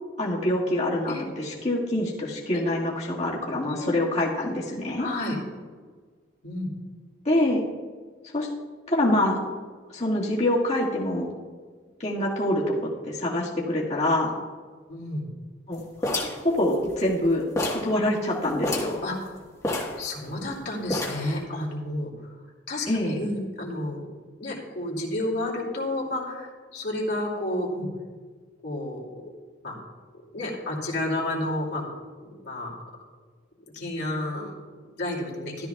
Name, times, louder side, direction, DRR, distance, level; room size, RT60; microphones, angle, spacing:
voice 1, 0.2-5.1 7.3-7.6 8.3-8.5 8.9-9.4 9.9-11.3 12.0-14.3 15.7-17.4 17.7-19.0 22.9-23.1, left 1 dB, 40° left, -4 dB, 1.8 m, -25 dB
voice 2, 3.6-4.0 5.0-5.4 6.4-6.7 14.9-15.3 19.0-19.2 20.0-22.3 22.7-24.1 24.4-27.9 28.6-29.2 29.6-29.7 30.3-31.8 32.2-32.7 33.7-35.7, left 1 dB, 60° left, -2 dB, 2.6 m, -31 dB
sound 1, 16.0-17.2 17.6-17.9 18.2-18.3 18.6-19.0 19.6-20.5 20.9-21.4, left 1 dB, 20° left, 1.4 m, -29 dB
13.5 x 12.5 x 2.3 m, 1.5 s
head